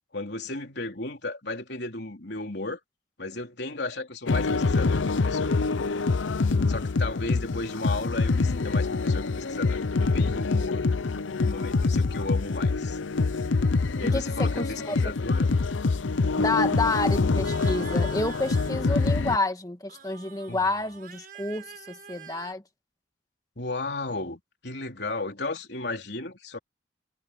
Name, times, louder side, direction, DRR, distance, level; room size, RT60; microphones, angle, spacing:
voice 1, 0.1-2.8 3.2-5.6 6.7-10.9 11.3-13.0 14.0-15.6 20.5-20.6 23.6-26.6, left 2 dB, 60° left, 3.8 m, -34 dB
sound 1, 4.3-19.4, left 3 dB, 90° left, 0.7 m, -25 dB
voice 2, 14.0-15.0 16.4-22.6, left 2 dB, 20° left, 1.9 m, -29 dB
sound 2, 17.4-19.3 19.9-22.5, right 8 dB, 50° right, 6.1 m, -47 dB
head